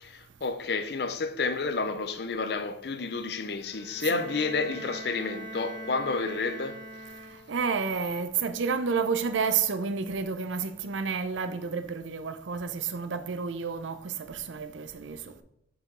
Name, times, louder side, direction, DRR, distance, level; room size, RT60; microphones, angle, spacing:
voice 1, 0.0-6.8, left 4 dB, 60° left, 0.5 m, -30 dB
Bowed string instrument, 3.6-7.7, right 1 dB, 5° left, 1.8 m, -42 dB
voice 2, 7.5-15.2, right 5 dB, 90° right, 0.6 m, -30 dB
5.9 x 5.1 x 3.8 m
head